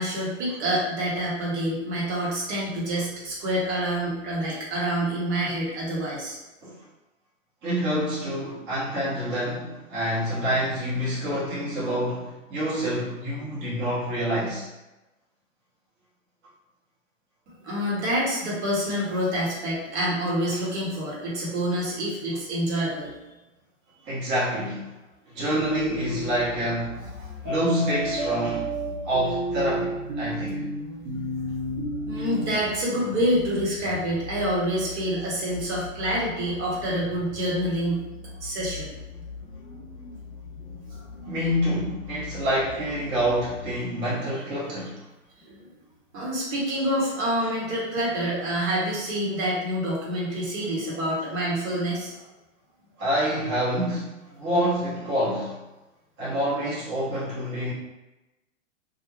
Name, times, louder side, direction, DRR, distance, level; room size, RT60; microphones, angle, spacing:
voice 1, 0.0-6.4 17.5-23.1 27.3-27.4 31.1-31.8 32.0-38.0 38.4-38.9 40.9-41.0 45.4-45.7 46.1-52.2, equal, 55° right, -6 dB, 1.3 m, -27 dB
voice 2, 7.6-14.7 24.0-24.9 25.2-27.1 27.4-28.7 29.0-30.6 32.2-32.3 41.3-45.1 53.0-55.6 56.2-57.7, equal, 30° right, -8 dB, 1.0 m, -27 dB
sound 1, 25.5-26.3 27.5-32.5, right 1 dB, 75° right, 1.3 m, -31 dB
sound 2, 25.6-43.7, left 4 dB, 25° left, 0.4 m, -41 dB
2.5 x 2.4 x 3.1 m, 1.0 s
hypercardioid pair, 110°, 39 cm